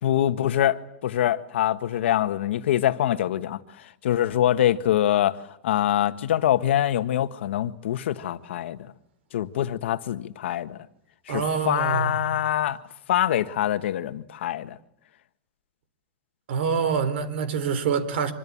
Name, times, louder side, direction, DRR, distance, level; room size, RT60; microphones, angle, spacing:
voice 1, 0.0-5.4 5.6-8.8 9.3-10.8 11.3-12.8 13.1-14.8, left 11 dB, 80° left, 1.6 m, -24 dB
voice 2, 11.3-12.2 16.5-18.3, right 6 dB, 70° right, 4.2 m, -26 dB
26.0 x 24.0 x 8.8 m
supercardioid pair, 165°, 6 cm